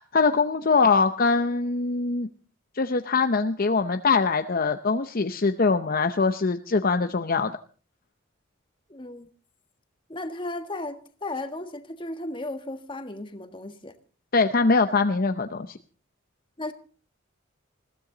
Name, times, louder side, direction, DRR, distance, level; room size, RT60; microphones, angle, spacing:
voice 1, 0.0-2.3 2.8-7.6 14.3-15.8, left 4 dB, 45° left, 0.7 m, -23 dB
voice 2, 8.9-9.3 10.1-14.0 16.6-16.7, left 2 dB, 25° left, 1.6 m, -35 dB
21.0 x 15.5 x 3.9 m
head